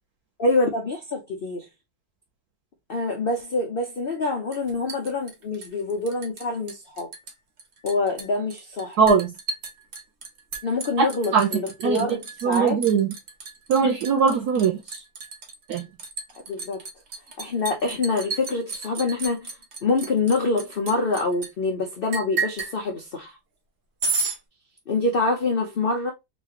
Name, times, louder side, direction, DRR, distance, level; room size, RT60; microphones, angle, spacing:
voice 1, 0.4-1.7 2.9-7.1 7.8-9.0 10.6-12.8 16.5-16.8 17.4-23.4 24.9-26.1, left 3 dB, 85° left, 0.5 m, -26 dB
Liquid, 4.5-6.4 6.7-7.3 7.6-21.5 22.1-22.7 24.0-24.4, right 4 dB, 50° right, 0.9 m, -32 dB
voice 2, 9.0-9.3 11.0-11.1 11.3-11.5 11.8-12.1 12.4-13.1 13.7-15.0 15.7-15.9, right 6 dB, 70° right, 1.1 m, -20 dB
4.1 x 2.3 x 2.8 m
omnidirectional pair, 1.9 m